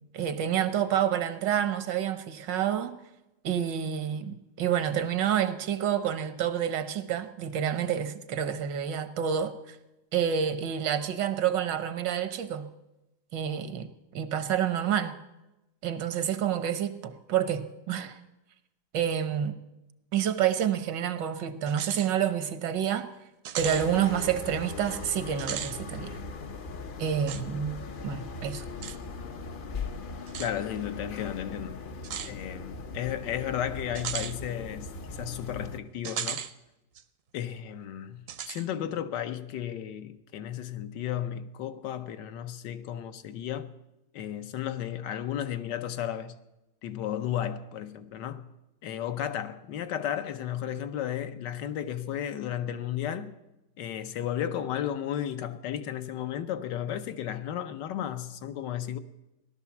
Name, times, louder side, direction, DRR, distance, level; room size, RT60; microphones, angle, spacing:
voice 1, 0.1-3.0 3.4-9.8 10.1-12.7 13.3-13.9 14.1-15.2 15.8-18.2 18.9-19.6 20.1-23.1 23.6-26.2 27.0-28.6, right 9 dB, 80° right, 1.6 m, -28 dB
sound 1, 21.7-22.1 22.5-22.6 23.5-23.9 25.3-25.8 27.3-27.4 28.8-29.0 30.3-30.5 32.0-32.3 34.0-34.4 36.0-36.5 37.0-37.1 38.3-38.7, right 9 dB, 60° right, 0.9 m, -35 dB
sound 2, 23.6-35.8, left 4 dB, 55° left, 0.6 m, -40 dB
voice 2, 30.4-31.8 32.2-36.5 37.3-43.7 44.1-46.4 46.8-48.5 48.8-53.3 53.8-59.0, left 10 dB, 75° left, 1.5 m, -34 dB
17.0 x 12.0 x 7.1 m
omnidirectional pair, 1.9 m